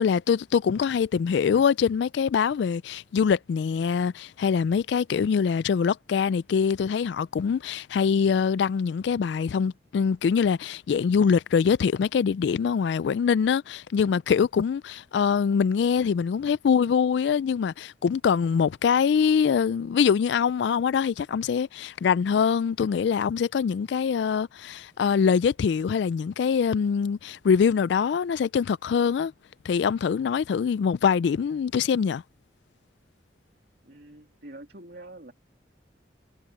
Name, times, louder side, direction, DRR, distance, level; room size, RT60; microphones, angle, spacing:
voice 1, 0.0-29.3 29.6-32.2, left 6 dB, 70° left, 0.3 m, -24 dB
voice 2, 33.8-35.3, right 1 dB, 55° right, 2.8 m, -45 dB
head